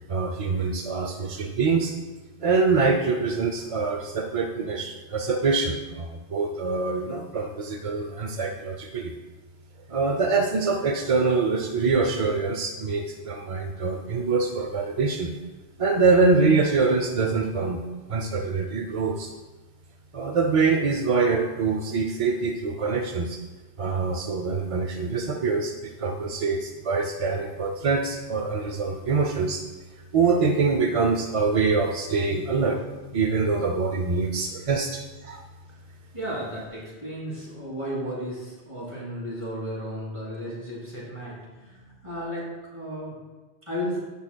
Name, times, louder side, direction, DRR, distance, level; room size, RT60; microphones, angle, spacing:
voice 1, 0.1-1.9 2.4-9.1 9.9-15.3 15.8-17.8 18.1-19.3 20.1-23.4 23.8-29.6 30.1-32.8 33.1-35.4, right 4 dB, 45° right, 4 dB, 0.4 m, -24 dB
voice 2, 32.3-32.8 36.1-43.1 43.7-44.0, equal, 25° right, -7 dB, 2.9 m, -34 dB
15.0 x 5.5 x 2.2 m, 1.2 s
omnidirectional pair, 1.1 m